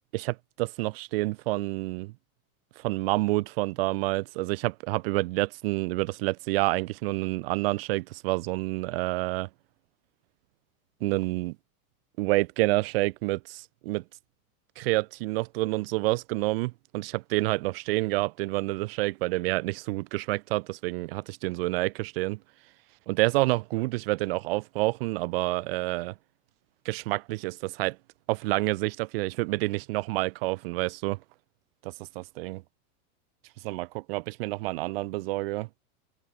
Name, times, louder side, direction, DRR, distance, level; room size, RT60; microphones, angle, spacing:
voice 1, 0.1-2.1 2.8-9.5 11.0-11.6 12.2-14.0 14.8-22.4 23.1-26.1 26.9-28.0 28.3-31.2 31.8-32.6 33.6-35.7, right 21 dB, 40° right, 0.6 m, -28 dB
supercardioid pair, 170°, 45 cm